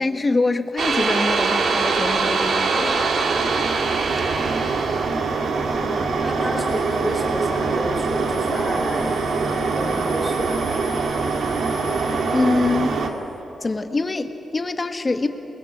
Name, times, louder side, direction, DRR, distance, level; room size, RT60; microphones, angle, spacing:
voice 1, 0.0-3.1 5.8-6.0 12.3-13.0 13.6-15.3, left 3 dB, 25° left, 7 dB, 1.4 m, -24 dB
sound 1, 0.8-13.1, right 4 dB, 65° right, 2.2 m, -23 dB
voice 2, 4.1-4.8 5.9-9.2 9.7-10.7, right 1 dB, 10° right, 0 dB, 3.7 m, -30 dB
sound 2, 6.6-13.4, left 7 dB, 65° left, 2.4 m, -45 dB
29.0 x 22.0 x 8.0 m, 3.0 s
wide cardioid pair, 125°, 0 cm